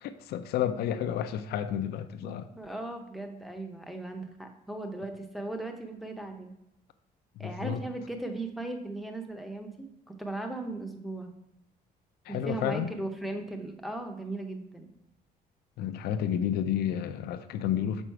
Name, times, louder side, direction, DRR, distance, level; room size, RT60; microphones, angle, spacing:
voice 1, 0.0-2.5 7.4-7.8 12.2-12.9 15.8-18.0, left 10 dB, 75° left, 9 dB, 0.5 m, -31 dB
voice 2, 2.2-6.5 7.4-9.9 10.2-11.3 12.3-14.9, right 2 dB, ahead, 2 dB, 0.7 m, -37 dB
6.3 x 5.0 x 4.5 m, 0.85 s
cardioid pair, 155°, 17 cm